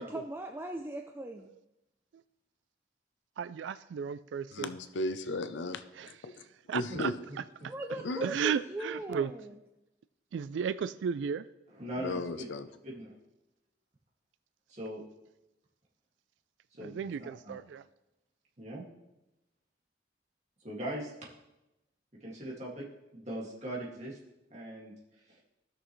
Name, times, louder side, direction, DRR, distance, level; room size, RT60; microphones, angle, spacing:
voice 1, 0.0-1.5 7.7-9.6, right 1 dB, 10° right, 4 dB, 0.4 m, -39 dB
voice 2, 3.4-4.7 6.0-6.1 6.7-7.1 7.6-7.7 8.2-9.3 10.3-11.5 16.8-17.8, right 7 dB, 85° right, 16 dB, 0.3 m, -34 dB
voice 3, 4.5-6.3 6.7-7.1 8.0-8.2 12.0-12.7, left 2 dB, 90° left, 10 dB, 0.6 m, -35 dB
voice 4, 11.8-12.5 12.8-13.2 14.7-15.0 16.8-16.9 17.2-17.6 18.6-18.8 20.6-21.1 22.2-22.9 23.1-24.2 24.5-24.9, right 1 dB, 40° right, -4 dB, 2.1 m, -40 dB
16.0 x 6.2 x 3.1 m, 0.94 s
head